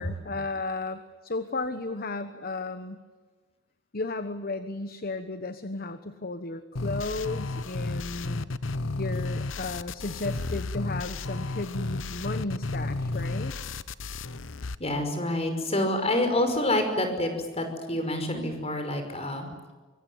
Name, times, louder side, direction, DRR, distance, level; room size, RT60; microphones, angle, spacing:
voice 1, 0.0-3.0 3.9-8.5 9.0-13.5, left 3 dB, 50° left, 10 dB, 1.2 m, -34 dB
sound 1, 6.8-14.8, left 2 dB, 80° left, 1.0 m, -32 dB
voice 2, 14.8-19.5, left 1 dB, 30° left, 6 dB, 5.5 m, -27 dB
24.5 x 24.0 x 9.5 m, 1.3 s
head